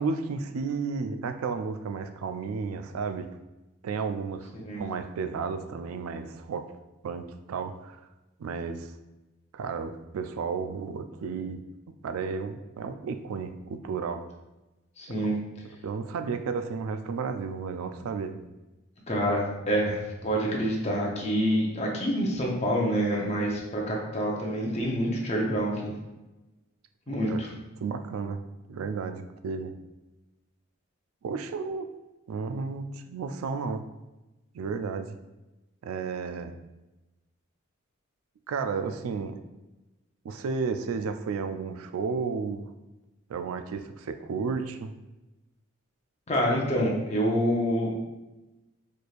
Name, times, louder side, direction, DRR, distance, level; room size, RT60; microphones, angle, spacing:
voice 1, 0.0-3.3 3.8-4.5 4.8-6.7 7.0-8.0 8.4-8.9 9.5-11.6 12.0-14.2 15.2-15.3 15.8-18.4 27.1-27.4 27.8-29.7 31.2-31.9 32.3-33.8 34.5-35.2 35.8-36.6 38.5-39.4 40.2-42.7 43.3-44.9, right 5 dB, 85° right, 8 dB, 0.3 m, -33 dB
voice 2, 15.0-15.3 19.1-25.9 27.1-27.5 46.3-47.9, equal, 30° left, -2 dB, 0.7 m, -27 dB
4.2 x 3.2 x 2.4 m, 1.0 s
head